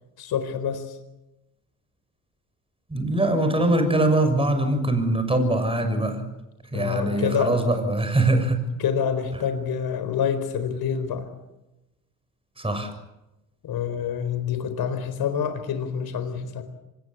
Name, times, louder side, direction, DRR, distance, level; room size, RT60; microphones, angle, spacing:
voice 1, 0.2-1.0 6.7-7.6 8.8-11.3 13.6-16.6, left 7 dB, 55° left, 9 dB, 4.4 m, -27 dB
voice 2, 2.9-6.3 6.7-8.6 12.6-12.9, right 2 dB, 10° right, 6 dB, 6.6 m, -22 dB
25.5 x 21.0 x 8.6 m, 0.96 s
hypercardioid pair, 70°, 44 cm